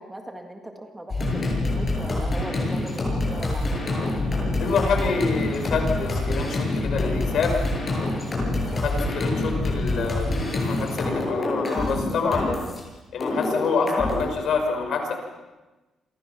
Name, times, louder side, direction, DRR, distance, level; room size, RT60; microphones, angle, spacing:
voice 1, 0.0-4.0, right 1 dB, 10° right, 3 dB, 1.9 m, -39 dB
sound 1, 1.1-12.8 13.2-14.2, left 2 dB, 25° left, 7.6 m, -26 dB
voice 2, 4.6-7.6 8.7-12.6 13.1-15.1, left 4 dB, 60° left, 4 dB, 5.7 m, -26 dB
29.0 x 24.5 x 6.0 m, 1.1 s
cardioid pair, 170°, 0 cm